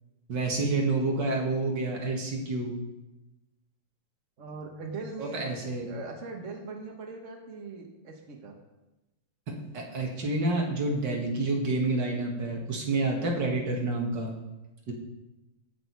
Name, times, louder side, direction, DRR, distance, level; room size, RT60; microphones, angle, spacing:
voice 1, 0.3-2.8 5.2-5.9 9.5-14.4 14.9-15.0, right 2 dB, 55° right, 0 dB, 2.3 m, -29 dB
voice 2, 4.4-5.4 5.9-8.5, right 3 dB, 40° right, 1 dB, 1.4 m, -40 dB
17.0 x 6.3 x 4.7 m, 1.0 s
omnidirectional pair, 2.4 m